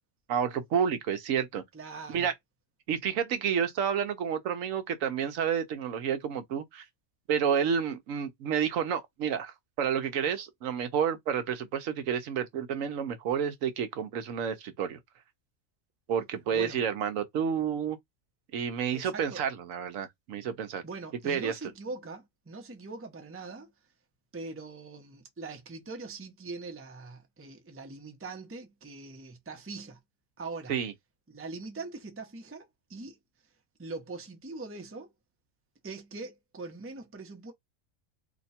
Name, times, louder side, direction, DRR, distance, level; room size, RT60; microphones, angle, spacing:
voice 1, 0.3-1.6 2.1-2.3 2.9-6.8 7.3-15.0 16.1-18.0 18.5-20.8 21.2-21.6 30.7-30.9, right 7 dB, 75° right, 1.0 m, -30 dB
voice 2, 1.7-2.3 16.5-16.8 18.9-19.4 20.8-23.7 24.3-30.0 30.4-30.7 31.3-33.2 33.8-35.1 35.8-37.5, right 3 dB, 15° right, 0.6 m, -42 dB
2.9 x 2.2 x 4.1 m
omnidirectional pair, 1.4 m